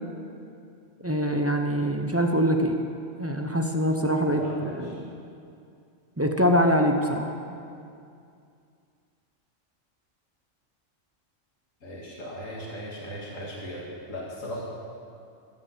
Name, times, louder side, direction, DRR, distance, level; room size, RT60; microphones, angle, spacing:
voice 1, 1.0-2.8 3.2-5.1 6.2-7.3, equal, 15° right, 3 dB, 0.5 m, -24 dB
voice 2, 4.3-5.0 7.7-7.8 11.8-14.6, equal, 85° left, -5 dB, 2.2 m, -38 dB
14.5 x 5.7 x 8.5 m, 2.5 s
omnidirectional pair, 1.3 m